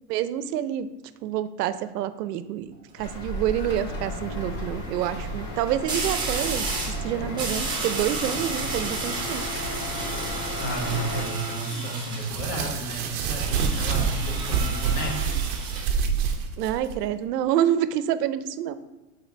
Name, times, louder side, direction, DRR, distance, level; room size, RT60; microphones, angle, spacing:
voice 1, 0.1-0.9 1.2-6.7 7.0-9.4 16.6-18.7, right 11 dB, 85° right, 13 dB, 0.6 m, -27 dB
sound 1, 2.7-3.1 5.9-7.0 7.4-12.4 13.4-15.9, right 3 dB, 10° right, 0.8 m, -32 dB
sound 2, 3.0-11.2, equal, 25° left, 0.7 m, -34 dB
voice 2, 10.6-15.2, right 1 dB, 80° left, 0 dB, 1.7 m, -32 dB
sound 3, 12.2-17.0, right 6 dB, 35° right, 0.5 m, -27 dB
5.7 x 3.8 x 4.4 m, 1.1 s
supercardioid pair, 155°, 47 cm